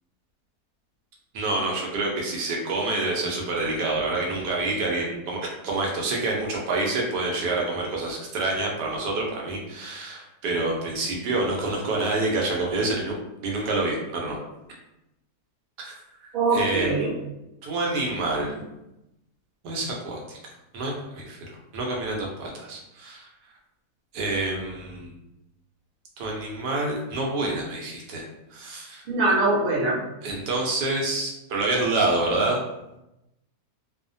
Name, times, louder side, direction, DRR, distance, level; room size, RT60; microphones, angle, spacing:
voice 1, 1.3-5.4 5.6-13.1 13.4-14.4 15.8-15.9 16.2-16.9 17.6-18.5 19.6-20.4 20.7-21.4 21.7-23.2 24.1-25.1 26.2-28.2 28.5-29.0 30.2-32.6, right 2 dB, 85° right, -2 dB, 1.3 m, -27 dB
voice 2, 16.3-17.1 29.1-30.0, right 3 dB, 50° right, -5 dB, 0.7 m, -22 dB
3.0 x 2.1 x 2.6 m, 0.91 s
omnidirectional pair, 1.7 m